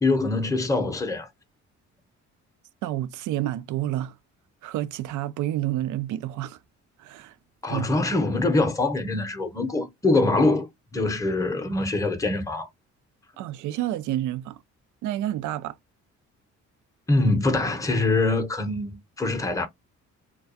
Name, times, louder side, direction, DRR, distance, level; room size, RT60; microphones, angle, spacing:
voice 1, 0.0-1.3 7.6-10.7 10.9-12.7 17.1-19.7, left 2 dB, 10° left, 0.7 m, -24 dB
voice 2, 2.8-4.1 4.6-6.6 7.0-7.3 7.7-7.9 13.4-14.6 15.0-15.7, right 13 dB, 80° right, 0.4 m, -29 dB
2.3 x 2.2 x 2.6 m
cardioid pair, 90°, 30 cm